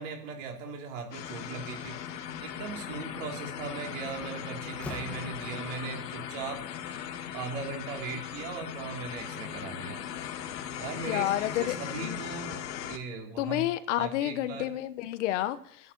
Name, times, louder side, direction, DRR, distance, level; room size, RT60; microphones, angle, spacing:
voice 1, 0.0-2.0 2.4-6.6 7.3-10.0 10.8-13.6 14.0-14.7, right 4 dB, 50° right, 3.9 m, -38 dB
sound 1, 1.1-13.0, left 9 dB, 70° left, 1.8 m, -39 dB
Slam, 3.4-3.7 4.1-5.9, left 2 dB, 5° left, 1.3 m, -44 dB
voice 2, 11.1-12.2 13.4-15.9, left 13 dB, 45° left, 1.1 m, -30 dB
11.0 x 10.0 x 8.7 m
supercardioid pair, 150°, 49 cm